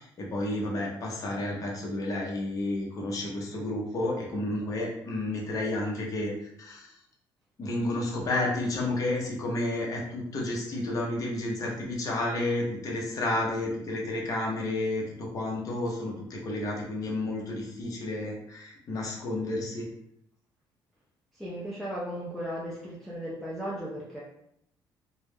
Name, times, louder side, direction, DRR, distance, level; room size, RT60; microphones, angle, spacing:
voice 1, 0.0-7.0 7.6-19.9, left 2 dB, 40° left, -2 dB, 0.6 m, -31 dB
voice 2, 21.3-24.2, equal, ahead, -7 dB, 0.4 m, -36 dB
2.2 x 2.0 x 3.2 m, 0.74 s
cardioid pair, 145°, 9 cm